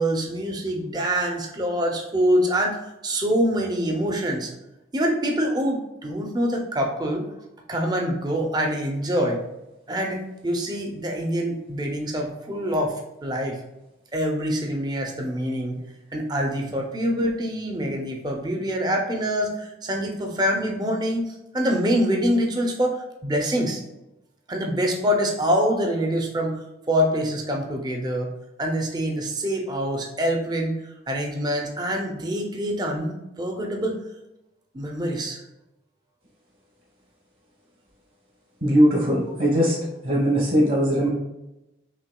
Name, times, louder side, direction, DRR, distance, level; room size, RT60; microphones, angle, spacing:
voice 1, 0.0-2.8 3.0-4.5 4.9-7.3 7.7-9.4 9.9-13.0 13.2-13.6 14.1-15.8 16.1-23.8 24.5-28.3 28.6-30.8 31.1-34.0 34.7-35.4, equal, 20° right, 1 dB, 0.5 m, -25 dB
voice 2, 38.6-39.8 40.0-41.1, equal, 50° right, -4 dB, 1.0 m, -20 dB
5.6 x 2.8 x 2.3 m, 0.92 s
head